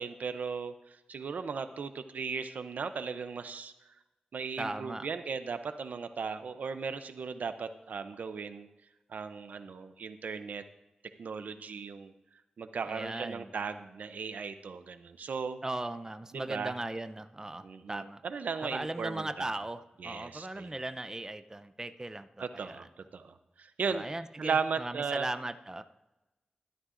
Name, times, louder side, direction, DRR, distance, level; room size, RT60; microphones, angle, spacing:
voice 1, 0.0-3.7 4.3-8.7 9.1-10.6 11.2-12.1 12.6-15.6 16.3-16.7 17.6-19.5 20.0-20.7 22.4-24.0 24.4-25.3, right 5 dB, 85° right, 10 dB, 0.6 m, -37 dB
voice 2, 4.6-5.1 12.9-13.5 15.6-18.2 18.6-22.9 23.9-25.8, right 2 dB, 20° right, 10 dB, 0.6 m, -38 dB
14.5 x 13.0 x 2.6 m, 1.0 s
cardioid pair, 55°, 3 cm